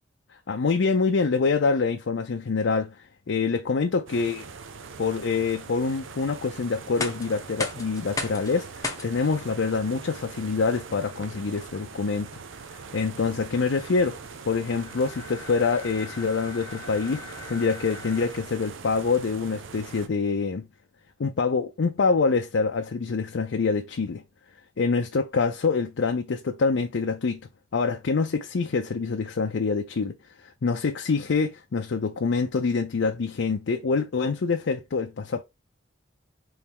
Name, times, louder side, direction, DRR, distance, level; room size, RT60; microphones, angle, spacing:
voice 1, 0.5-2.9 3.3-4.4 5.0-12.3 12.7-14.2 14.4-17.2 17.5-20.6 21.2-24.2 24.8-27.4 27.7-30.2 30.6-35.4, left 4 dB, 75° left, 0.5 m, -25 dB
sound 1, 4.1-20.1, right 5 dB, 90° right, 0.6 m, -42 dB
sound 2, 6.8-18.7, left 3 dB, 20° left, 0.8 m, -39 dB
4.4 x 3.2 x 3.5 m
head